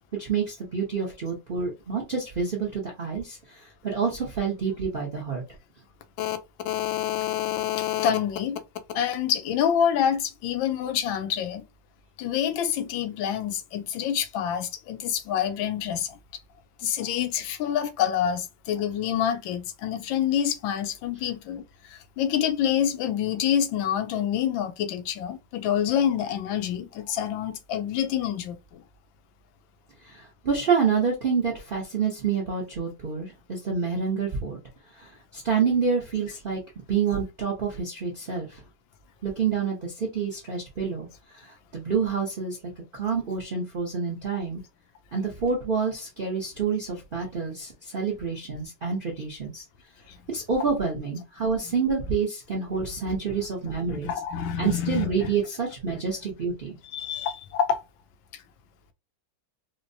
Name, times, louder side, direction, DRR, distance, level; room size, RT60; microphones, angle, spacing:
voice 1, 0.2-5.4 30.0-34.6 34.9-36.6 36.9-38.6 39.2-42.6 42.9-44.6 45.1-49.6 50.3-54.1 54.6-56.8, right 5 dB, 65° right, 0.5 m, -28 dB
voice 2, 6.6-8.6 8.9-11.6 12.2-16.2 16.8-28.8 50.1-50.2 53.9-55.3 56.9-57.8, left 9 dB, 90° left, 1.4 m, -27 dB
4.4 x 2.1 x 2.6 m
omnidirectional pair, 2.1 m